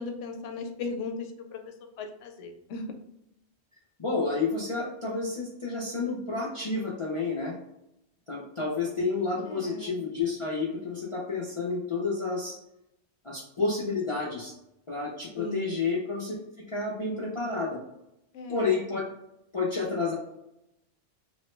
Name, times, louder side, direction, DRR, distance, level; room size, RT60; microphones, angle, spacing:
voice 1, 0.0-2.9 9.5-10.0 15.4-15.7 18.3-18.8, left 3 dB, 85° left, 4 dB, 0.9 m, -37 dB
voice 2, 4.0-7.5 8.3-12.5 13.2-14.5 14.9-16.3 16.7-17.8 18.5-19.0 19.5-20.1, left 4 dB, 40° left, -5 dB, 0.4 m, -30 dB
3.0 x 2.1 x 3.0 m, 0.84 s
omnidirectional pair, 1.2 m